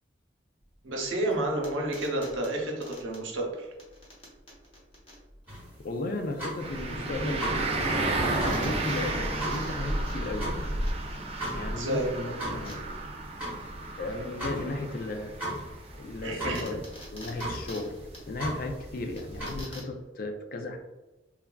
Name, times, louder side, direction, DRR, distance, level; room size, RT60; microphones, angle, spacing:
sound 1, 0.6-20.0, equal, 30° left, 0.8 m, -49 dB
voice 1, 0.8-3.7 11.5-12.1 16.2-16.8, right 1 dB, 85° right, 0 dB, 0.7 m, -30 dB
sound 2, 5.5-19.8, right 1 dB, 10° right, 1.1 m, -39 dB
voice 2, 5.8-7.6 7.9-10.5 11.5-12.8 14.0-15.3 16.0-16.8 17.1-20.8, left 2 dB, 50° left, 4 dB, 0.3 m, -35 dB
sound 3, 6.6-19.6, right 2 dB, 30° right, 0.4 m, -33 dB
3.3 x 2.3 x 2.2 m, 1.1 s
head